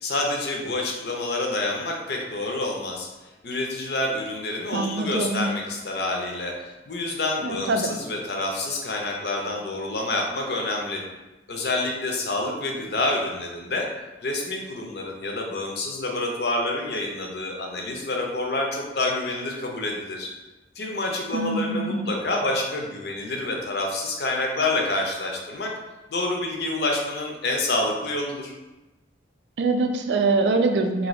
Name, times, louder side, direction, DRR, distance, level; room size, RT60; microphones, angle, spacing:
voice 1, 0.0-3.1 3.4-11.0 11.5-13.9 14.2-20.3 20.8-25.7 26.1-28.5, left 2 dB, 65° left, 0 dB, 0.6 m, -28 dB
voice 2, 4.7-5.5 7.4-7.9 21.3-22.1 29.6-31.1, right 3 dB, 75° right, 5 dB, 0.4 m, -24 dB
2.8 x 2.6 x 3.1 m, 1.1 s
head